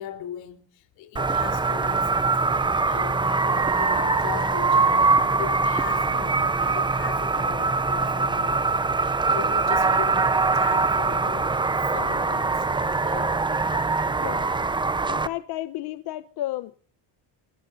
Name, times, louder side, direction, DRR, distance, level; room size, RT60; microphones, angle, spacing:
voice 1, 0.0-5.1 5.4-12.7 13.0-13.4, left 11 dB, 80° left, 4.0 m, -39 dB
sound 1, 1.2-15.3, right 3 dB, 10° right, 0.8 m, -23 dB
voice 2, 15.1-16.8, left 14 dB, 55° left, 1.0 m, -32 dB
28.5 x 17.5 x 2.7 m
cardioid pair, 160°, 45 cm